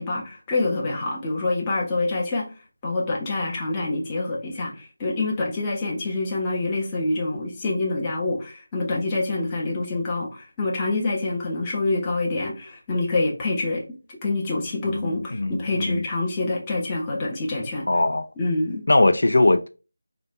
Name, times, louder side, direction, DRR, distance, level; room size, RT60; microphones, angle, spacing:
voice 1, 0.0-2.5 2.8-13.8 14.2-17.9 18.4-18.8, left 2 dB, 15° left, 0.6 m, -26 dB
voice 2, 14.8-16.0 17.9-18.3 18.9-19.7, left 2 dB, 70° left, 0.4 m, -20 dB
3.8 x 2.1 x 3.3 m
figure-of-eight pair, 175°, 0 cm